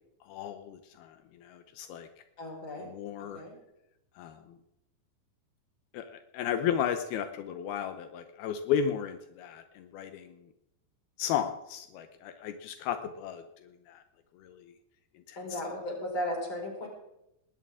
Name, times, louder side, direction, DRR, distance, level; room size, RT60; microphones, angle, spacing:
voice 1, 0.3-2.1 2.8-3.4 4.2-4.6 5.9-10.4 11.2-13.4 13.9-14.0 14.3-14.7 15.3-15.6, left 8 dB, 85° left, 7 dB, 2.9 m, -34 dB
voice 2, 2.4-2.9 3.3-3.6 15.4-16.9, left 1 dB, 30° left, -1 dB, 6.1 m, -35 dB
20.0 x 19.0 x 3.7 m, 0.84 s
omnidirectional pair, 4.4 m